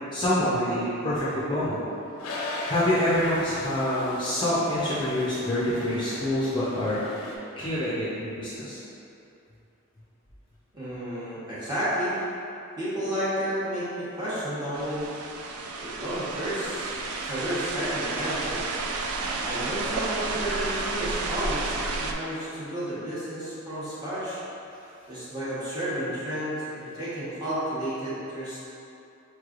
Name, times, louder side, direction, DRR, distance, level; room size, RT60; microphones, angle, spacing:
voice 1, 0.0-1.8 2.6-7.3 7.6-8.8, left 1 dB, 20° left, -10 dB, 0.5 m, -26 dB
Toilet flush, 2.2-7.4, left 2 dB, 80° left, 0.5 m, -38 dB
voice 2, 10.7-12.2 12.8-15.2 15.8-16.9 17.2-18.6 19.4-24.4 25.1-28.6, equal, 20° right, -11 dB, 1.0 m, -31 dB
sound 1, 14.7-22.1, right 3 dB, 85° right, 0.4 m, -31 dB
4.6 x 3.2 x 2.4 m, 2.8 s
head